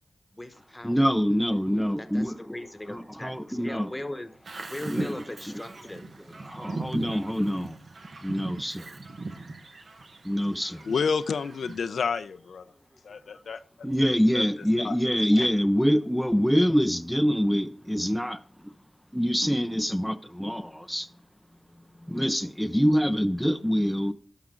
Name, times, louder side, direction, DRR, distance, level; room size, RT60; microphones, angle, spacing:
voice 1, 0.3-1.1 2.0-4.3 4.7-6.1, left 1 dB, 15° left, 1.1 m, -39 dB
voice 2, 0.8-2.6 2.9-3.9 4.8-5.2 6.4-7.8 8.2-9.0 10.2-10.9 13.8-18.7 19.1-21.1 22.0-24.1, equal, ahead, 0.5 m, -25 dB
Bird vocalization bird call bird song, 4.5-11.8, right 3 dB, 60° right, 1.2 m, -39 dB
voice 3, 10.8-12.7 13.0-13.6 14.3-14.4 14.8-15.0 15.4-15.5, left 5 dB, 85° left, 0.5 m, -29 dB
11.5 x 5.9 x 3.8 m
cardioid pair, 75°, 0 cm